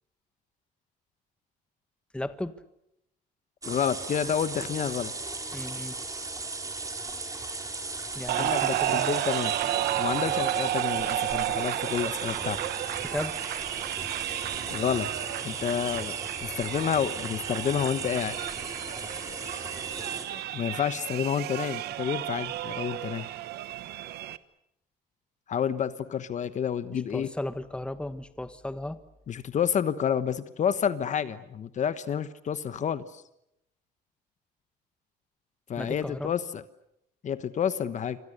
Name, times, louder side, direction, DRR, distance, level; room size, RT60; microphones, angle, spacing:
voice 1, 2.1-2.5 5.5-6.0 8.1-9.1 13.0-13.4 26.9-29.0 35.8-36.3, left 1 dB, 5° left, 11 dB, 1.4 m, -35 dB
sound 1, 3.6-20.3, right 3 dB, 20° right, 4.2 m, -37 dB
voice 2, 3.7-5.1 8.3-9.5 10.0-12.6 14.7-15.1 15.4-18.4 20.3-23.3 25.5-27.3 29.3-33.2 35.7-36.6 37.2-38.2, left 8 dB, 45° left, 12 dB, 1.2 m, -29 dB
sound 2, 8.3-24.4, right 13 dB, 75° right, 1.1 m, -32 dB
28.5 x 25.0 x 6.8 m, 0.79 s
cardioid pair, 110°, 17 cm